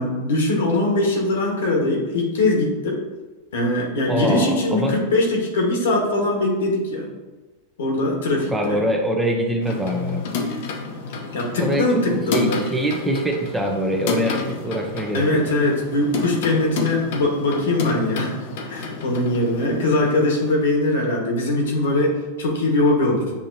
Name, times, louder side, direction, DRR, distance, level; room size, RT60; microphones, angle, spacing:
voice 1, 0.0-3.0 3.5-7.1 7.8-8.8 11.3-12.6 15.1-18.3 18.7-23.3, left 2 dB, 90° left, 0 dB, 1.3 m, -21 dB
voice 2, 4.1-5.0 8.5-10.2 11.6-15.4, right 1 dB, 5° right, 2 dB, 0.6 m, -24 dB
sound 1, 9.6-20.5, left 4 dB, 65° left, 0.7 m, -30 dB
6.8 x 2.8 x 2.7 m, 1.2 s
supercardioid pair, 140°, 0 cm